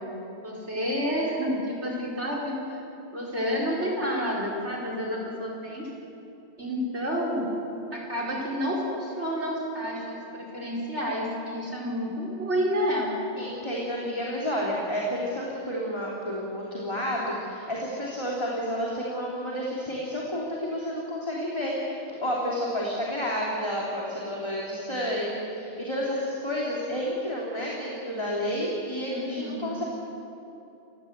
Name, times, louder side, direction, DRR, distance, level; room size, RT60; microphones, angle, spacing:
voice 1, 0.4-2.8 3.1-5.9 6.6-7.5 7.9-13.1 29.1-29.8, equal, 70° right, -2 dB, 5.3 m, -29 dB
voice 2, 13.4-29.8, equal, 25° left, -4 dB, 3.1 m, -30 dB
28.0 x 16.5 x 8.0 m, 2.9 s
omnidirectional pair, 1.2 m